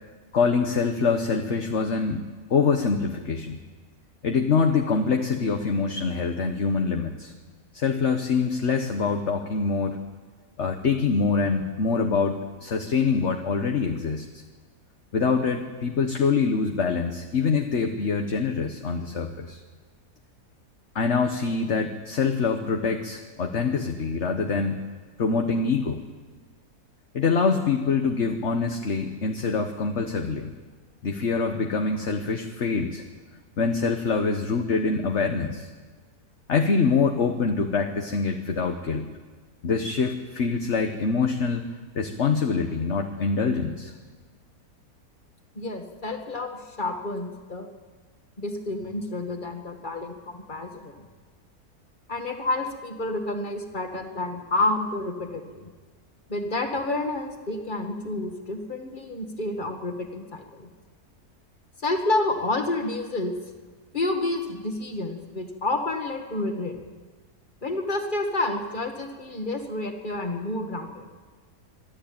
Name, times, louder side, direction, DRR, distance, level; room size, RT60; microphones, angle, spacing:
voice 1, 0.3-2.2 2.5-3.6 4.2-7.3 7.7-10.0 10.6-14.4 15.1-19.6 20.9-24.8 25.2-26.0 27.1-30.5 31.0-33.0 33.6-35.7 36.5-39.1 39.6-41.7 41.9-43.9, left 5 dB, 50° left, 4 dB, 1.4 m, -25 dB
voice 2, 45.6-47.7 48.4-51.0 52.1-55.6 56.3-60.7 61.8-63.3 63.9-66.8 67.6-71.1, left 2 dB, 30° left, 4 dB, 2.2 m, -29 dB
23.5 x 13.5 x 8.9 m, 1.4 s
omnidirectional pair, 1.6 m